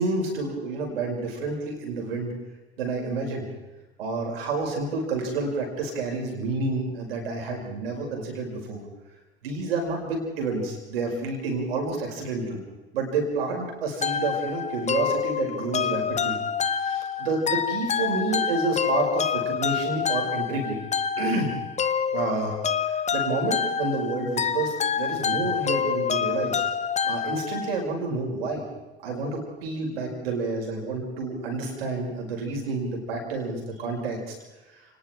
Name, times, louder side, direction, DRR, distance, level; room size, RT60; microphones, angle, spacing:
voice 1, 0.0-2.3 2.8-3.5 4.0-8.8 9.4-12.6 12.9-16.4 16.8-20.8 21.2-21.5 22.1-22.6 22.9-26.6 27.0-28.6 29.0-34.3, right 3 dB, 70° right, 1 dB, 5.6 m, -29 dB
sound 1, 14.0-27.8, left 7 dB, 20° left, 0.9 m, -27 dB
29.5 x 19.5 x 4.6 m, 1.1 s
figure-of-eight pair, 65°, 30 cm